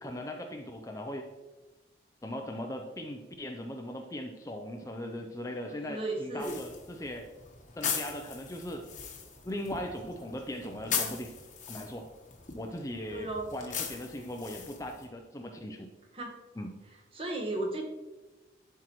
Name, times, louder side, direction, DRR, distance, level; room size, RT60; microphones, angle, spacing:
voice 1, 0.0-1.3 2.2-7.3 7.8-8.9 9.4-11.3 11.7-12.1 12.5-15.9 16.6-16.7, left 1 dB, 20° left, 4 dB, 0.4 m, -39 dB
voice 2, 5.8-6.6 13.1-13.5 16.1-16.3 17.1-17.8, right 2 dB, 30° right, 1 dB, 1.2 m, -34 dB
sound 1, 6.4-15.1, left 6 dB, 45° left, 1.0 m, -39 dB
11.5 x 4.6 x 3.0 m, 1.2 s
head